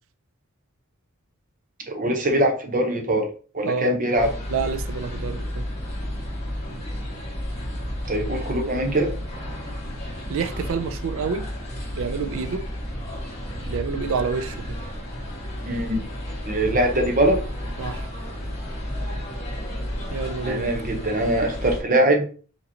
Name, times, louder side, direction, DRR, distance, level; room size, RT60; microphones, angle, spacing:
voice 1, 1.9-3.3 3.5-4.3 8.1-9.1 15.7-16.0 16.5-17.4 20.5-22.3, right 1 dB, 40° right, 0.8 m, -22 dB
voice 2, 3.6-4.0 4.5-5.7 10.3-11.5 11.9-12.7 13.7-14.8 17.8-18.1 20.1-20.7, right 5 dB, 60° right, 0.4 m, -28 dB
sound 1, 4.2-21.8, equal, 30° left, 1.6 m, -32 dB
5.0 x 3.0 x 2.8 m
head